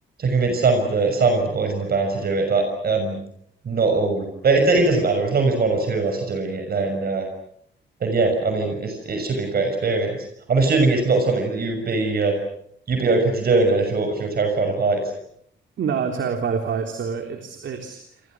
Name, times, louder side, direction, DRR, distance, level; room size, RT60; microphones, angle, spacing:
voice 1, 0.2-3.2 3.6-7.3 8.0-10.1 10.5-12.3 12.9-15.0, right 3 dB, 50° right, 5 dB, 6.4 m, -21 dB
voice 2, 15.8-18.2, right 6 dB, 70° right, 4 dB, 3.5 m, -27 dB
29.0 x 28.0 x 6.3 m, 0.68 s
wide cardioid pair, 140°, 20 cm